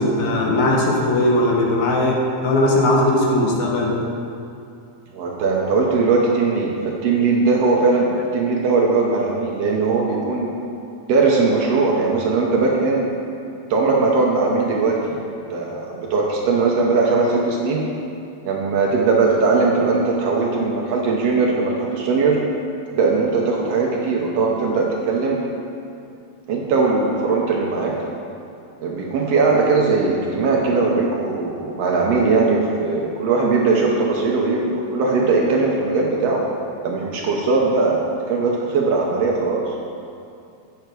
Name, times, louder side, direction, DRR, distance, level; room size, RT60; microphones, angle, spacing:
voice 1, 0.0-3.9, left 1 dB, 80° left, -2 dB, 2.4 m, -18 dB
voice 2, 5.1-10.5 11.1-13.1 13.7-17.8 18.4-22.4 22.9-25.4 26.5-28.0 28.8-36.4 36.8-39.7, right 4 dB, 70° right, -2 dB, 1.7 m, -19 dB
9.3 x 5.9 x 4.6 m, 2.6 s
omnidirectional pair, 3.3 m